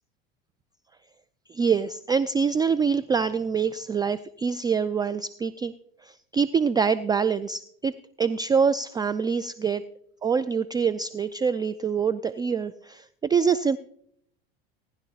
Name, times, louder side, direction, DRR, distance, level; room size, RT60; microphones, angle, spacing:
voice 1, 1.5-5.7 6.0-9.8 10.2-13.8, right 6 dB, 15° right, 14 dB, 0.3 m, -25 dB
19.0 x 11.0 x 2.8 m, 0.67 s
hypercardioid pair, 90°, 30 cm